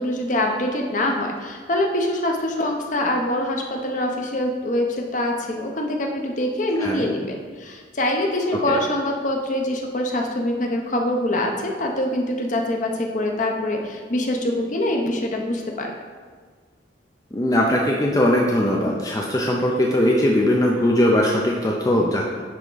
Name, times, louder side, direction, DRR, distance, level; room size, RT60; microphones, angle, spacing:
voice 1, 0.0-15.9, left 1 dB, 45° left, 2 dB, 0.8 m, -24 dB
voice 2, 17.3-22.2, left 1 dB, 20° left, -1 dB, 0.5 m, -20 dB
10.0 x 3.6 x 3.9 m, 1.5 s
head